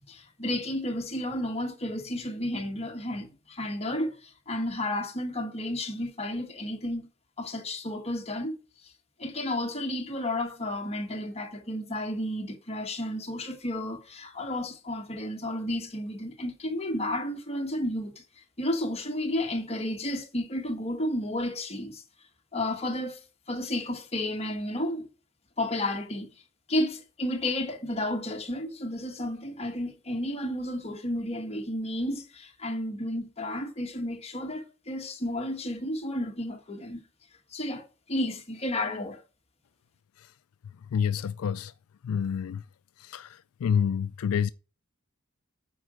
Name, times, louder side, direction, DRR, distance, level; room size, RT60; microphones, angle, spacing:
voice 1, 0.1-7.1 7.4-8.6 9.2-18.2 18.6-22.0 22.5-23.2 23.5-25.1 25.6-26.3 26.7-37.0 37.5-39.2, left 1 dB, 30° left, 1.3 m, -32 dB
voice 2, 40.9-41.7 42.0-42.6 43.0-44.5, left 7 dB, 80° left, 0.3 m, -28 dB
9.3 x 4.8 x 4.9 m
head